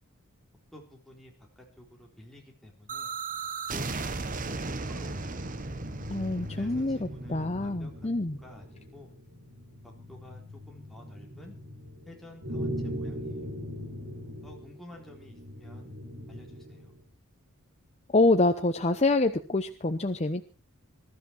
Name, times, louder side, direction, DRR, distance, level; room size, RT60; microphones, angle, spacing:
voice 1, 0.7-3.1 3.7-5.6 6.5-9.1 9.8-10.4 10.7-11.6 12.1-13.5 14.4-15.9 16.3-16.9, left 1 dB, ahead, -1 dB, 3.9 m, -51 dB
sound 1, 2.9-8.6, right 3 dB, 35° right, 1.1 m, -36 dB
sound 2, 4.9-17.0, equal, 70° right, 7.3 m, -41 dB
voice 2, 6.1-8.4 18.1-20.4, left 2 dB, 30° left, 6 dB, 0.9 m, -26 dB
21.0 x 13.0 x 4.6 m, 0.36 s
head